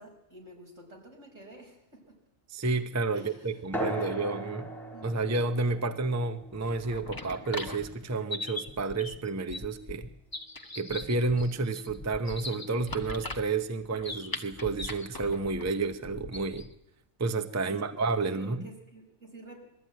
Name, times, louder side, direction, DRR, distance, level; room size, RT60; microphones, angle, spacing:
voice 1, 0.0-2.2 3.1-3.6 4.0-4.6 4.9-5.3 17.7-19.6, right 2 dB, 75° right, 5.9 m, -50 dB
voice 2, 2.5-4.7 5.0-10.1 10.8-16.7 17.2-18.7, right 3 dB, 15° right, 0.6 m, -30 dB
sound 1, 3.7-8.8, right 1 dB, ahead, 3.5 m, -39 dB
sound 2, 6.5-16.7, left 2 dB, 15° left, 1.2 m, -40 dB
21.5 x 13.5 x 9.3 m
omnidirectional pair, 1.3 m